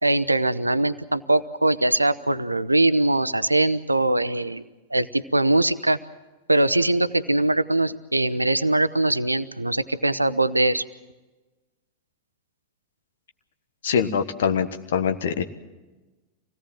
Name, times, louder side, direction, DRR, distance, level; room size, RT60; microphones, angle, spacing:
voice 1, 0.0-4.6 4.9-6.0 6.5-10.8, right 2 dB, 85° right, 16 dB, 0.7 m, -22 dB
voice 2, 13.8-15.4, left 7 dB, 60° left, 9 dB, 1.4 m, -23 dB
25.5 x 17.5 x 7.6 m, 1.2 s
figure-of-eight pair, 90°, 0 cm